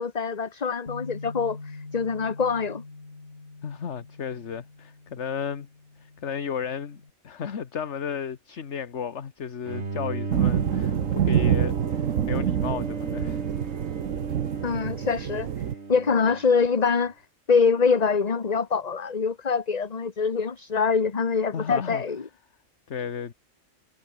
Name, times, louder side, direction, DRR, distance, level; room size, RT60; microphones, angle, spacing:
voice 1, 0.0-2.8 14.6-15.5 15.9-17.1 17.5-22.2, left 5 dB, 35° left, 1.2 m, -24 dB
Bass guitar, 0.9-7.1, left 3 dB, 80° left, 3.9 m, -44 dB
voice 2, 3.6-5.7 6.0-13.4 21.5-22.0 22.9-23.3, left 7 dB, 65° left, 1.6 m, -34 dB
Bowed string instrument, 9.7-16.9, right 3 dB, 60° right, 2.8 m, -35 dB
sound 1, 10.3-15.7, right 9 dB, 85° right, 1.3 m, -26 dB
omnidirectional pair, 1.3 m